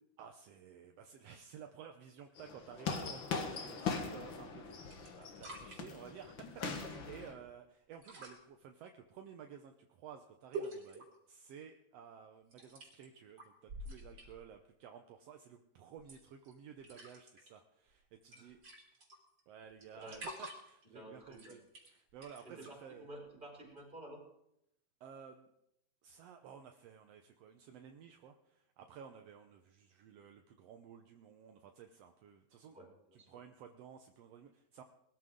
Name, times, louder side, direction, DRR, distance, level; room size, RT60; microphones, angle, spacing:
voice 1, 0.2-4.7 5.2-18.6 19.5-23.1 25.0-25.5 26.0-32.8 33.1-34.8, right 7 dB, 70° right, 5 dB, 1.6 m, -54 dB
sound 1, 2.4-7.3, left 5 dB, 50° left, 1.7 m, -41 dB
sound 2, 4.2-4.6 4.9-5.8 6.5-7.0 7.9-8.4 10.5-11.1 12.5-13.0 13.4-14.5 16.0-16.5 16.8-17.5 17.9-18.0 18.2-19.4 19.8-20.8 21.2-22.7 23.7-23.8, right 2 dB, 35° right, 3.8 m, -47 dB
voice 2, 20.9-21.6 22.4-24.2 32.7-33.3, right 1 dB, 15° right, -3 dB, 4.9 m, -51 dB
21.0 x 13.5 x 3.8 m, 0.79 s
omnidirectional pair, 3.7 m